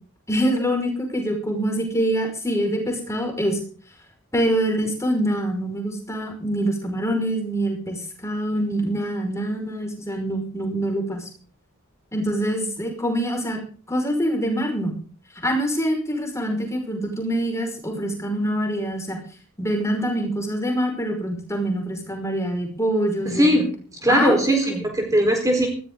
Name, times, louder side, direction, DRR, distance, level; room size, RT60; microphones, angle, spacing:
voice 1, 0.3-3.6 4.3-11.3 12.1-13.6 13.9-14.9 15.4-19.2 19.6-23.7 24.1-24.8, equal, 15° left, 2 dB, 5.4 m, -25 dB
voice 2, 23.2-23.7 24.0-25.7, right 1 dB, 15° right, 2 dB, 4.4 m, -19 dB
19.5 x 15.5 x 3.9 m, 0.42 s
head